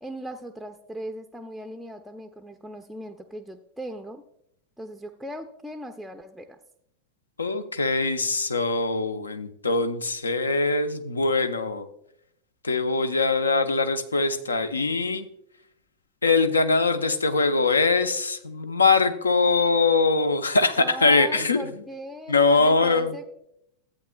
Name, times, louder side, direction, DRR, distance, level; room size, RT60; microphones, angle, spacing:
voice 1, 0.0-4.2 4.8-6.6 20.8-23.2, right 1 dB, ahead, 5 dB, 0.5 m, -38 dB
voice 2, 7.4-11.9 12.6-15.3 16.2-21.7 22.3-23.2, left 3 dB, 75° left, 10 dB, 0.6 m, -22 dB
14.0 x 8.4 x 2.2 m, 0.77 s
figure-of-eight pair, 90°, 0 cm